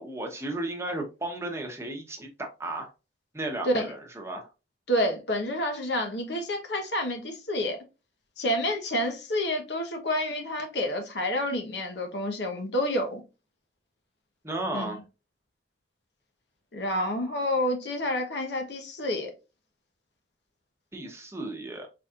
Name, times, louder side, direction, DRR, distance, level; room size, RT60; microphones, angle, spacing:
voice 1, 0.0-2.9 3.3-4.5 14.4-15.0 20.9-21.9, right 2 dB, 15° right, 0.9 m, -34 dB
voice 2, 4.9-7.8 8.4-13.2 14.7-15.0 16.7-19.3, left 1 dB, 70° left, 1.1 m, -29 dB
4.6 x 4.1 x 2.4 m
head